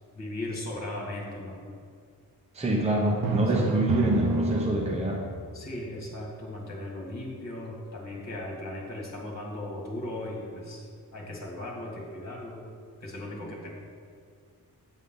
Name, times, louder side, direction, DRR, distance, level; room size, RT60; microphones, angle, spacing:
voice 1, 0.1-1.6 3.6-3.7 5.5-12.7 13.0-13.7, left 1 dB, 50° left, -2 dB, 2.2 m, -37 dB
voice 2, 2.5-5.2, right 1 dB, 20° right, -2 dB, 0.8 m, -26 dB
Drum, 3.2-5.2, right 3 dB, 75° right, 0.7 m, -28 dB
8.3 x 8.3 x 3.9 m, 2.2 s
wide cardioid pair, 155°, 35 cm